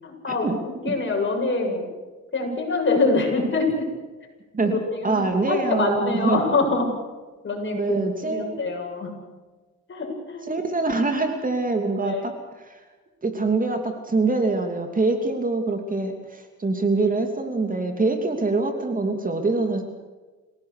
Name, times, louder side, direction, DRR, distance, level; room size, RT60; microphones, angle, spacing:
voice 1, 0.0-1.9 2.3-3.9 4.6-6.9 7.4-9.1 9.9-10.5 12.0-12.3, left 3 dB, 40° left, 1 dB, 7.9 m, -25 dB
voice 2, 5.0-6.4 7.7-8.7 10.5-12.3 12.7-12.8 13.2-19.8, right 3 dB, 25° right, 5 dB, 2.9 m, -24 dB
27.0 x 17.5 x 6.7 m, 1.3 s
cardioid pair, 90°, 30 cm